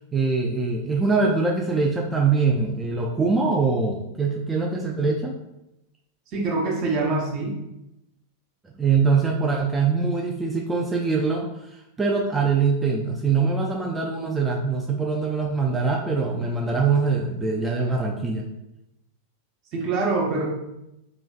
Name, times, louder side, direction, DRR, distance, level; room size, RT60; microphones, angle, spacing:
voice 1, 0.1-5.3 8.7-18.4, right 4 dB, 10° right, -1 dB, 0.3 m, -23 dB
voice 2, 6.3-7.6 19.7-20.5, right 3 dB, 40° right, -2 dB, 0.9 m, -24 dB
3.2 x 3.0 x 2.3 m, 0.89 s
figure-of-eight pair, 90°, 0 cm